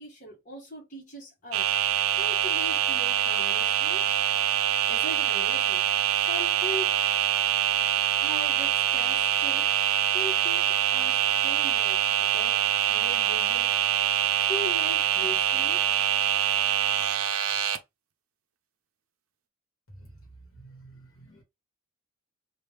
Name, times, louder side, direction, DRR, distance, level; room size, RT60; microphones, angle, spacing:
voice 1, 0.0-1.7 2.1-4.1 4.9-5.9 6.2-7.0 8.0-9.7 10.1-13.8 14.4-15.9, left 1 dB, 35° left, 1.3 m, -40 dB
sound 1, 1.5-17.8, right 11 dB, 70° right, 0.5 m, -25 dB
voice 2, 20.6-21.4, right 3 dB, 70° left, 1.3 m, -50 dB
3.1 x 2.5 x 3.3 m
head